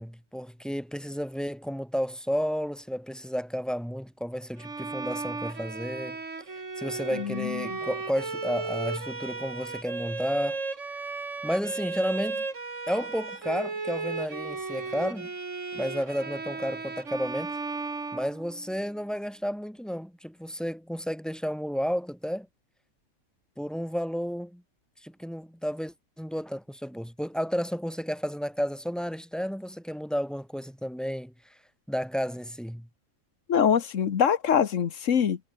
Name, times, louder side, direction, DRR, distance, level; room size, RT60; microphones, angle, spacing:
voice 1, 0.0-6.2 6.8-10.6 11.4-12.5 12.9-15.3 15.7-17.5 18.1-22.5 23.6-24.6 25.0-31.3 31.9-32.9, equal, ahead, 2.6 m, -32 dB
Bowed string instrument, 4.6-18.9, right 3 dB, 55° right, 3.1 m, -35 dB
voice 2, 7.1-7.8 33.5-35.4, left 8 dB, 60° left, 1.4 m, -24 dB
omnidirectional pair, 1.5 m